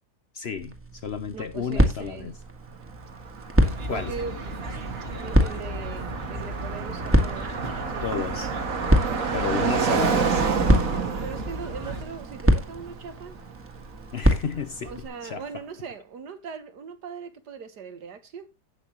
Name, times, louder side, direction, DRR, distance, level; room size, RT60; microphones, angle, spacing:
voice 1, 0.3-2.4 3.9-4.1 8.0-8.5 9.3-10.4 14.1-14.9 15.2-15.6, left 6 dB, 55° left, 0.8 m, -32 dB
sound 1, 0.6-15.1, equal, 10° right, 1.6 m, -27 dB
voice 2, 1.3-2.3 3.9-4.4 5.2-7.6 9.2-10.1 10.7-13.3 14.8-18.5, right 6 dB, 85° right, 1.9 m, -39 dB
Car passing by, 2.7-14.7, right 5 dB, 55° right, 1.8 m, -30 dB
sound 2, 3.6-12.0, right 1 dB, 40° right, 1.7 m, -35 dB
17.0 x 5.8 x 3.0 m
omnidirectional pair, 1.7 m